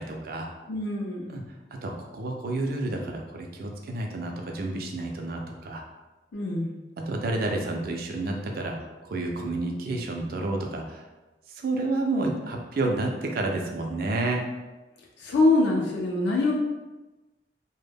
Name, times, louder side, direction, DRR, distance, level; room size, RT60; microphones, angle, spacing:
voice 1, 0.0-0.5 1.3-5.8 7.0-11.0 11.5-14.5, right 2 dB, 55° right, 2 dB, 0.4 m, -30 dB
voice 2, 0.7-1.4 6.3-6.8 15.2-16.5, left 2 dB, 70° left, -2 dB, 0.4 m, -24 dB
2.1 x 2.1 x 3.3 m, 1.1 s
head